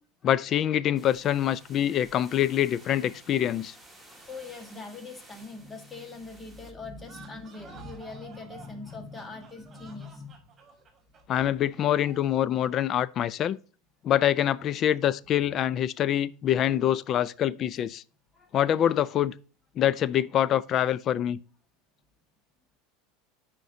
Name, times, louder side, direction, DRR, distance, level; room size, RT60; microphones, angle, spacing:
voice 1, 0.2-3.7 11.3-13.6 14.0-18.0 18.5-19.3 19.8-21.4, left 11 dB, 40° left, 0.3 m, -25 dB
sound 1, 0.9-6.7, right 1 dB, ahead, 1.7 m, -53 dB
voice 2, 4.0-10.5 18.3-18.6, left 3 dB, 20° left, 1.4 m, -42 dB
sound 2, 7.0-12.4, right 6 dB, 30° right, 2.2 m, -52 dB
9.2 x 5.1 x 2.7 m
supercardioid pair, 115°, 0 cm